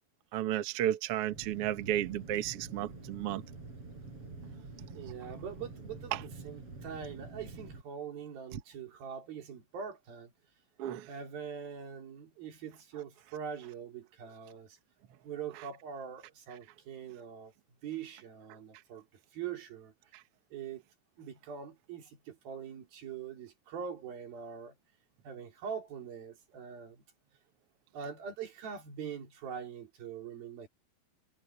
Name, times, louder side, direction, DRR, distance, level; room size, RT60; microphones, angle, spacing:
voice 1, 0.3-3.4 10.8-11.1, right 12 dB, 60° right, 1.6 m, -33 dB
sound 1, 1.2-7.8, right 3 dB, 40° right, 6.4 m, -47 dB
voice 2, 4.9-10.3 11.1-14.8 15.2-17.5 17.8-19.1 19.3-19.9 20.5-20.8 21.2-24.8 25.2-27.0 27.9-30.7, right 7 dB, 90° right, 5.3 m, -43 dB
omnidirectional pair, 4.1 m